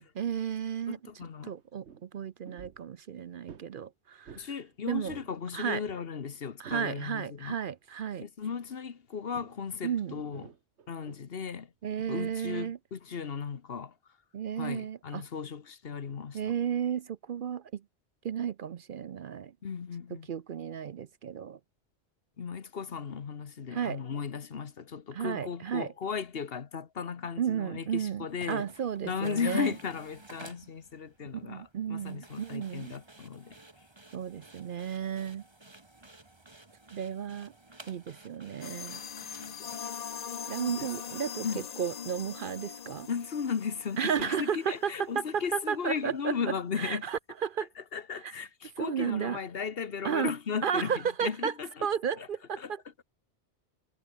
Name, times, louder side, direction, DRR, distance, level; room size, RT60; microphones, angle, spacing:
voice 1, 0.0-1.0 1.4-4.4 4.9-5.2 5.5-5.8 6.6-8.2 9.8-10.2 11.8-12.8 14.3-15.2 16.3-17.8 18.2-19.5 20.3-21.6 23.7-24.0 25.1-25.9 27.4-29.7 31.4-32.9 34.1-35.4 36.9-37.5 37.9-39.0 40.5-41.5 41.8-43.1 44.0-46.4 46.8-47.7 48.2-48.3 48.8-49.4 50.0-50.3 50.6-51.5 51.8-52.8, right 8 dB, 55° right, 0.7 m, -33 dB
voice 2, 0.9-1.6 4.4-7.5 8.2-10.5 10.9-11.7 12.0-13.9 14.6-16.5 19.6-20.3 22.4-28.7 29.0-33.5 40.7-40.9 41.4-41.7 43.1-47.1 47.8-50.9 51.2-51.9 52.2-52.3 52.6-52.7, left 6 dB, 60° left, 1.3 m, -36 dB
sound 1, 1.2-1.3 1.6-2.1 2.4-2.9 3.5-3.7 4.3-4.5 4.9-5.4 5.6-6.9 7.4-7.6 9.3-9.6 10.1-11.2 11.8-12.0, right 7 dB, 80° right, 1.5 m, -50 dB
sound 2, 28.3-39.8, right 2 dB, 25° right, 1.9 m, -54 dB
sound 3, 38.6-44.9, left 8 dB, 45° left, 0.6 m, -41 dB
omnidirectional pair, 1.1 m